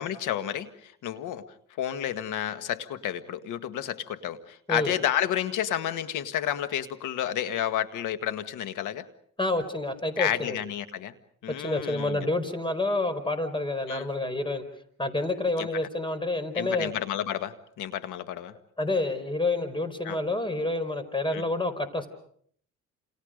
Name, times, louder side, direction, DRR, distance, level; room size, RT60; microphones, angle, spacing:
voice 1, 0.0-1.4 1.8-9.1 10.2-11.1 11.4-12.3 13.9-14.1 15.6-15.7 16.5-18.5 20.0-20.2 21.3-21.4, left 10 dB, 90° left, 11 dB, 1.7 m, -31 dB
voice 2, 9.4-10.6 11.6-14.6 15.0-16.9 18.8-22.1, left 2 dB, 15° left, 11 dB, 4.6 m, -28 dB
28.5 x 28.0 x 5.2 m, 0.63 s
cardioid pair, 90°, 30 cm